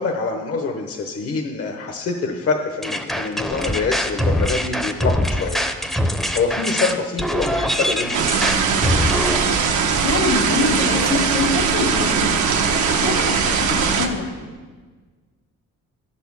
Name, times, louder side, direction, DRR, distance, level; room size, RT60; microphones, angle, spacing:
voice 1, 0.0-8.2, left 4 dB, 50° left, 3 dB, 0.8 m, -25 dB
sound 1, 2.8-9.4, equal, ahead, 0.6 m, -23 dB
sound 2, 8.1-14.1, right 6 dB, 75° right, 0.9 m, -20 dB
voice 2, 9.9-12.5 12.9-14.5, left 3 dB, 80° left, 2 dB, 1.9 m, -24 dB
10.0 x 4.2 x 7.1 m, 1.4 s
cardioid pair, 90°, 30 cm